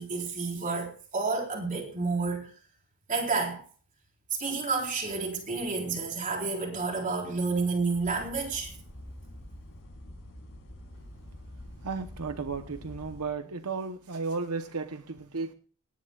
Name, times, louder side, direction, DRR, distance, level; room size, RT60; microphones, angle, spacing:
voice 1, 0.0-2.5 3.1-3.6 4.4-8.7, right 4 dB, 35° right, 1 dB, 4.4 m, -30 dB
sound 1, 7.9-13.2, left 1 dB, 65° left, 5.8 m, -46 dB
voice 2, 11.8-15.5, right 4 dB, 80° right, 8 dB, 1.0 m, -34 dB
18.5 x 17.5 x 2.4 m, 0.40 s
head